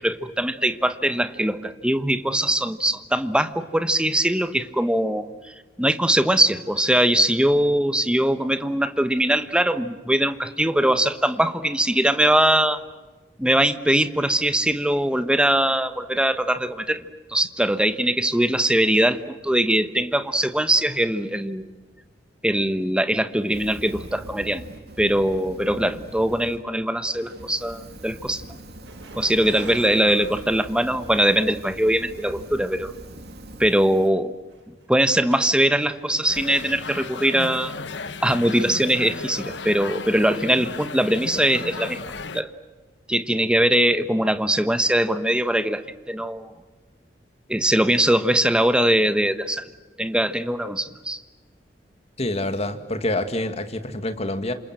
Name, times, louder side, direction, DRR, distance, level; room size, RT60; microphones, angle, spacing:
voice 1, 0.0-12.8 13.4-17.0 17.3-21.7 22.4-24.6 25.0-28.6 29.2-32.9 33.6-34.3 34.9-37.8 38.2-42.0 42.3-42.5 43.1-46.5 47.5-49.6 50.0-51.2, right 1 dB, 5° right, 11 dB, 1.2 m, -21 dB
Fire, 23.4-26.6 27.0-34.1, right 1 dB, 65° right, 2.9 m, -42 dB
sound 1, 28.8-31.4 32.3-32.4 33.3-33.4 33.6-33.9 34.5-35.9 36.3-36.8 37.1-37.2 38.4-38.5, right 2 dB, 80° right, 7.8 m, -43 dB
sound 2, 36.3-42.4, left 4 dB, 75° left, 1.2 m, -34 dB
voice 2, 52.2-54.5, left 1 dB, 35° left, 8 dB, 2.1 m, -27 dB
28.5 x 27.0 x 7.7 m, 1.3 s
head